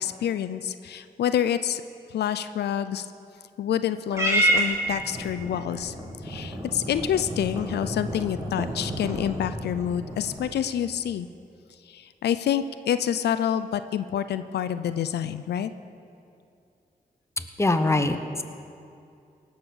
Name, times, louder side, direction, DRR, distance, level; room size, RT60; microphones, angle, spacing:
voice 1, 0.0-1.8 2.1-3.0 3.6-5.9 6.2-11.3 11.9-15.7, left 9 dB, 90° left, 12 dB, 0.4 m, -27 dB
Purr / Meow, 4.1-10.6, right 1 dB, 15° right, 2.8 m, -29 dB
voice 2, 17.4-18.4, left 2 dB, 15° left, 7 dB, 1.0 m, -24 dB
18.0 x 6.3 x 7.0 m, 2.5 s
cardioid pair, 55°, 17 cm